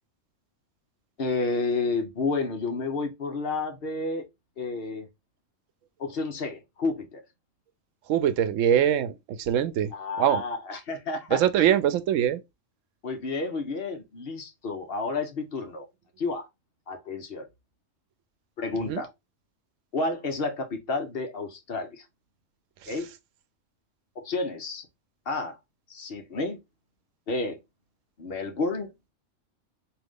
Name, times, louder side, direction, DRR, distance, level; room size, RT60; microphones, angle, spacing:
voice 1, 1.2-4.2 4.6-5.1 6.0-7.2 9.9-11.7 13.0-15.9 16.2-16.5 16.9-17.5 18.6-19.1 19.9-22.0 22.9-23.1 24.2-24.9 25.3-25.6 25.9-26.6 27.3-27.6 28.2-28.9, left 3 dB, 55° left, 1.0 m, -30 dB
voice 2, 8.1-9.9 10.2-10.4 11.3-12.4 18.9-19.0 22.8-22.9, right 10 dB, 90° right, 1.0 m, -23 dB
3.8 x 2.8 x 3.5 m
omnidirectional pair, 1.3 m